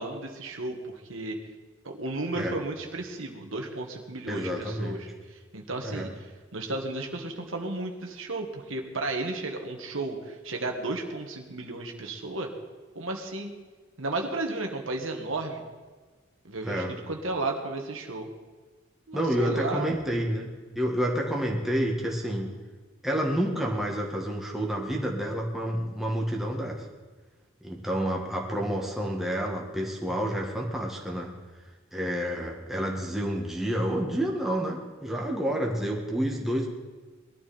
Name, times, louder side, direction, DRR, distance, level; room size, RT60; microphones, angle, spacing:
voice 1, 0.0-1.4 1.8-12.5 13.0-13.5 14.0-15.6 16.4-18.3 19.1-20.0, right 2 dB, 75° right, 2 dB, 1.9 m, -33 dB
voice 2, 4.3-5.0 5.8-6.1 16.6-16.9 19.1-22.5 23.0-26.9 27.6-31.3 31.9-36.7, equal, ahead, -2 dB, 1.9 m, -29 dB
20.5 x 12.5 x 4.4 m, 1.4 s
head